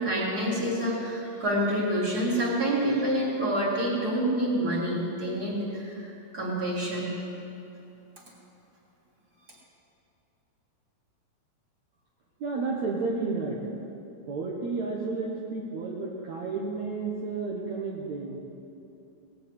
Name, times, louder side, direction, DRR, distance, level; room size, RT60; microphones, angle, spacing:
voice 1, 0.0-7.3, right 1 dB, 25° right, -5 dB, 3.4 m, -27 dB
voice 2, 12.4-13.6 14.3-18.4, right 4 dB, 60° right, -3 dB, 2.2 m, -31 dB
19.0 x 7.8 x 8.4 m, 2.9 s
omnidirectional pair, 4.4 m